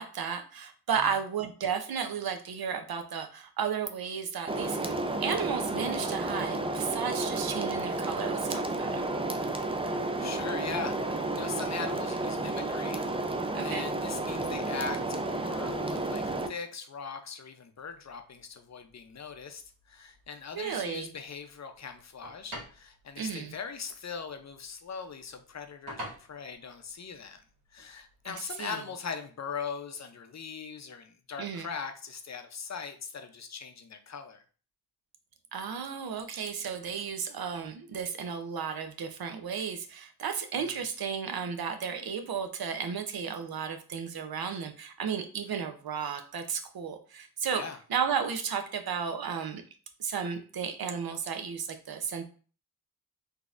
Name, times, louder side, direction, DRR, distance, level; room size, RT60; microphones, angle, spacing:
voice 1, 0.0-4.9 5.2-9.1 13.5-13.8 20.5-21.1 23.2-23.5 28.6-28.8 31.4-31.7 35.5-47.6 47.9-49.6 50.0-52.3, right 7 dB, 65° right, 6 dB, 0.6 m, -33 dB
sound 1, 4.5-16.5, right 2 dB, 15° right, 0.4 m, -32 dB
voice 2, 10.2-13.0 13.6-19.6 19.9-27.4 27.7-34.4 40.6-40.8 47.5-47.8, left 6 dB, 45° left, 6 dB, 0.6 m, -40 dB
sound 2, 17.7-28.6, right 1 dB, 80° right, 1.6 m, -51 dB
3.8 x 2.8 x 2.4 m, 0.40 s
cardioid pair, 60°, 40 cm